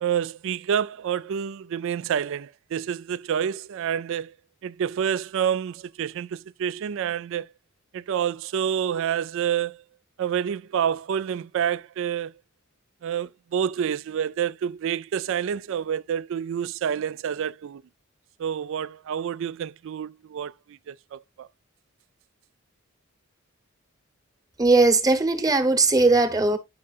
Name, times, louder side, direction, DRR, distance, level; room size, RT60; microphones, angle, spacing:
voice 1, 0.0-4.3 4.6-7.5 7.9-9.8 10.2-12.3 13.0-17.8 18.4-21.5, right 8 dB, 65° right, 0.3 m, -28 dB
voice 2, 24.6-26.6, right 3 dB, 20° right, 1.0 m, -19 dB
9.5 x 5.5 x 2.4 m
head